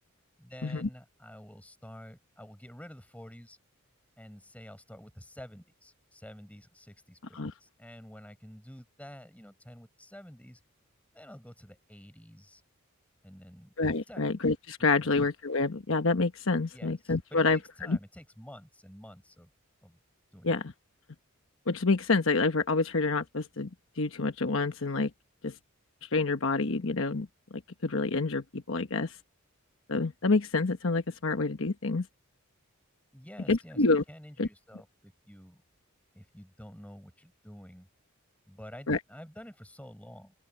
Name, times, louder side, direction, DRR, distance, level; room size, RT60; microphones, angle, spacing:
voice 1, 0.4-3.6 4.2-10.6 11.1-12.6 13.2-13.7 14.1-14.3 15.0-15.2 16.7-19.5 19.8-20.0 20.3-20.6 33.1-35.6 36.1-37.9 38.5-40.3, equal, 5° left, 7.2 m, -49 dB
voice 2, 13.8-17.6 17.9-18.0 20.4-20.7 21.7-23.7 24.0-25.1 25.4-25.5 26.1-27.3 27.5-29.2 29.9-32.0 33.5-34.0 34.4-34.5 38.9-39.0, left 3 dB, 65° left, 1.2 m, -27 dB
open air
head